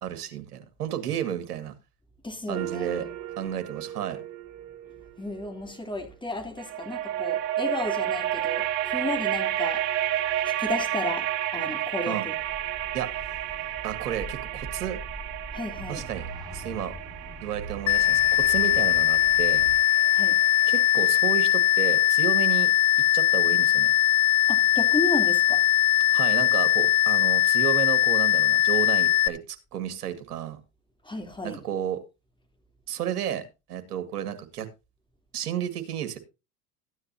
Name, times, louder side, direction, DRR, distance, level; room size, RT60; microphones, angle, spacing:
voice 1, 0.0-1.7 2.5-3.1 3.4-4.2 12.1-12.3 12.9-13.1 13.8-15.0 15.9-16.3 16.5-17.0 17.4-19.7 20.7-22.7 23.1-23.9 26.1-30.6 31.4-32.0 32.9-34.7 35.3-36.2, right 10 dB, 80° right, 1.9 m, -32 dB
voice 2, 2.2-3.1 5.2-9.8 10.4-12.3 15.5-16.0 20.1-20.4 24.5-25.6 31.0-31.6, left 2 dB, 10° left, 3.0 m, -33 dB
sound 1, 2.5-5.8 6.6-21.5, right 12 dB, 60° right, 1.4 m, -32 dB
sound 2, 12.4-19.8, right 2 dB, 10° right, 5.4 m, -42 dB
sound 3, 17.9-29.3, left 14 dB, 40° left, 0.9 m, -21 dB
14.0 x 9.8 x 2.7 m
hypercardioid pair, 75°, 45 cm